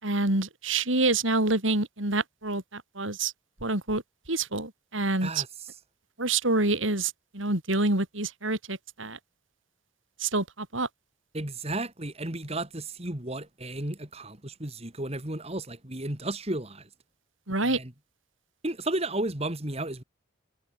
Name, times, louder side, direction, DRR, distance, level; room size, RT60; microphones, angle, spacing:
voice 1, 0.0-3.3 3.6-4.0 4.3-5.4 6.2-9.2 10.2-10.9 17.5-17.8, right 2 dB, 70° right, 4.6 m, -27 dB
voice 2, 5.2-5.7 11.3-16.9 17.6-17.9 18.6-20.0, right 2 dB, 30° right, 2.6 m, -33 dB
head